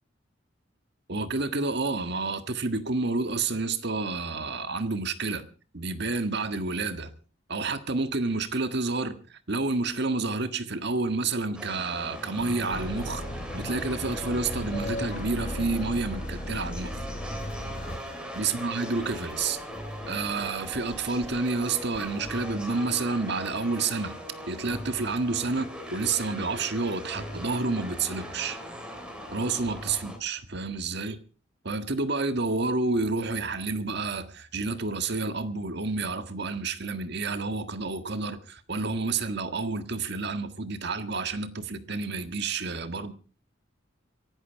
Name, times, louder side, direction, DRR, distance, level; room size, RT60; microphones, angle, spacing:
voice 1, 1.1-5.4 5.7-7.1 7.5-13.2 13.5-17.0 18.3-19.6 20.1-24.1 24.5-28.6 29.3-31.2 31.6-43.1, right 3 dB, 55° right, 1.6 m, -29 dB
sound 1, 11.5-30.2, equal, 5° right, 3.5 m, -39 dB
sound 2, 12.7-18.0, left 1 dB, 40° left, 1.5 m, -36 dB
sound 3, 17.4-22.4, left 1 dB, 80° left, 3.6 m, -53 dB
24.5 x 11.0 x 4.7 m
head